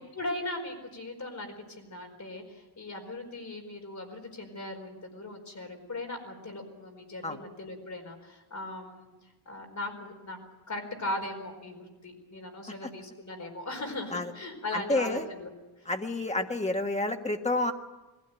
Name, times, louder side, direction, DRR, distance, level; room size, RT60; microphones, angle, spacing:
voice 1, 0.1-9.1 9.4-10.4 10.7-15.5, left 2 dB, 45° left, 3 dB, 4.6 m, -38 dB
voice 2, 14.7-15.2 15.8-17.7, left 2 dB, 15° left, 4 dB, 1.5 m, -29 dB
21.5 x 16.0 x 9.1 m, 1.1 s
wide cardioid pair, 145°, 39 cm